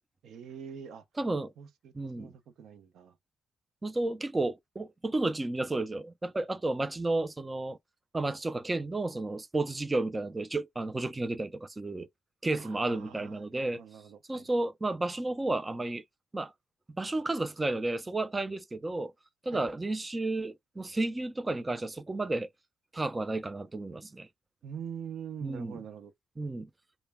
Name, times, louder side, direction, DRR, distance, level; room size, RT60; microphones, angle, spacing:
voice 1, 0.2-1.0 1.6-3.2 12.6-14.5 19.5-19.6 24.6-26.1, right 7 dB, 75° right, 0.6 m, -44 dB
voice 2, 1.2-1.5 1.9-2.3 3.8-7.8 8.1-12.1 12.4-13.8 14.3-16.0 16.3-16.5 17.0-19.1 19.4-22.5 22.9-24.3 25.4-25.8 26.4-26.7, right 2 dB, 20° right, 0.3 m, -32 dB
2.1 x 2.0 x 3.4 m
cardioid pair, 90°, 0 cm